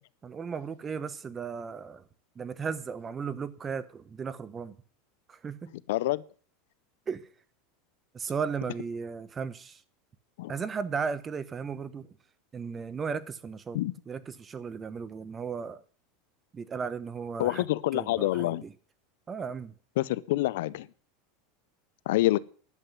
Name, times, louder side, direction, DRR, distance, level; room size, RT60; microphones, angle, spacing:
voice 1, 0.2-2.0 2.3-4.8 5.3-5.7 7.1-7.3 8.1-9.8 10.5-12.1 12.5-13.8 14.1-15.8 16.5-17.7 17.9-18.7 19.3-19.7, right 6 dB, 20° right, 1.0 m, -35 dB
voice 2, 5.9-6.2 10.4-10.5 13.7-13.9 17.4-18.6 20.0-20.9 22.1-22.4, left 17 dB, 75° left, 0.6 m, -27 dB
11.0 x 7.9 x 9.4 m
supercardioid pair, 130°, 0 cm